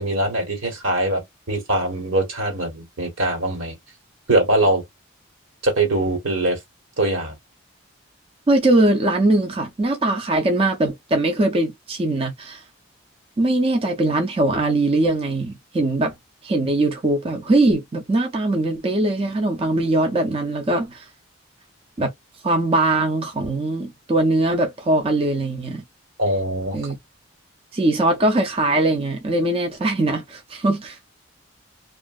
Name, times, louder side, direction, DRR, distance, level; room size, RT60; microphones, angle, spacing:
voice 1, 0.0-3.8 4.3-4.8 5.6-6.6 7.0-7.3 26.2-26.8, right 1 dB, 75° right, 1.4 m, -22 dB
voice 2, 8.5-12.6 13.4-16.1 16.4-21.1 22.0-22.1 22.4-25.8 26.7-27.0 27.7-31.1, right 2 dB, 30° right, 0.4 m, -21 dB
2.9 x 2.5 x 2.4 m
head